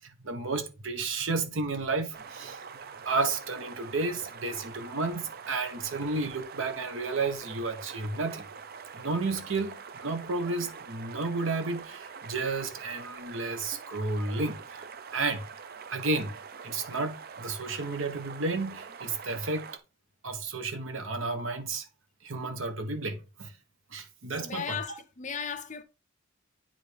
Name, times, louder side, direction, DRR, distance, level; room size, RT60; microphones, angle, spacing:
voice 1, 0.2-2.6 3.0-8.5 8.9-14.9 15.1-15.4 15.9-16.3 16.6-19.7 20.2-21.9 22.2-23.5 23.9-24.8, right 3 dB, 70° right, 1.1 m, -32 dB
sound 1, 2.1-19.8, right 6 dB, 45° right, 0.5 m, -45 dB
voice 2, 24.4-25.8, left 7 dB, 35° left, 0.5 m, -36 dB
10.5 x 3.7 x 3.4 m
head